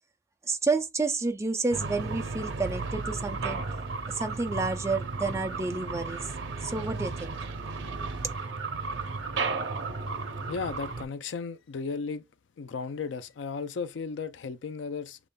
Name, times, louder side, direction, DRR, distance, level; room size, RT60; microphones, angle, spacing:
voice 1, 0.5-3.6 4.1-6.2 6.6-7.4, right 3 dB, 15° right, 0.4 m, -30 dB
sound 1, 1.7-11.0, right 4 dB, 85° right, 0.7 m, -34 dB
voice 2, 10.5-12.2 12.6-15.2, left 5 dB, 80° left, 0.4 m, -35 dB
6.8 x 3.0 x 2.2 m
head